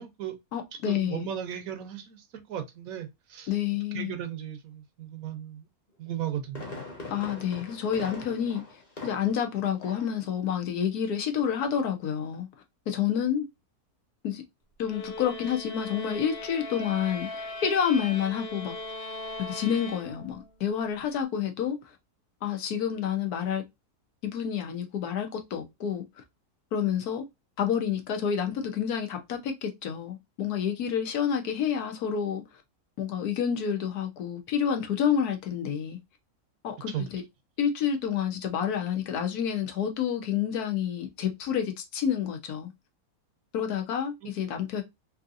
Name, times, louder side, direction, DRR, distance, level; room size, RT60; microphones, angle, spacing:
voice 1, 0.0-0.3 0.9-3.5 3.9-5.7 6.0-6.8 36.9-37.1 44.2-44.3, right 10 dB, 70° right, 1.1 m, -36 dB
voice 2, 0.5-1.3 3.5-4.1 7.1-8.6 9.0-12.5 12.9-13.4 14.2-14.4 14.8-17.3 17.6-18.7 19.4-21.8 22.4-23.6 24.2-26.0 26.7-27.2 27.6-32.4 33.0-36.0 36.6-37.2 37.6-42.7 43.5-44.8, left 8 dB, 80° left, 1.3 m, -29 dB
Fireworks, 6.1-9.5 9.8-10.2 10.5-10.6, left 2 dB, 30° left, 1.1 m, -42 dB
sound 1, 14.8-20.5, left 2 dB, 55° left, 0.8 m, -39 dB
3.6 x 2.7 x 2.4 m
omnidirectional pair, 1.6 m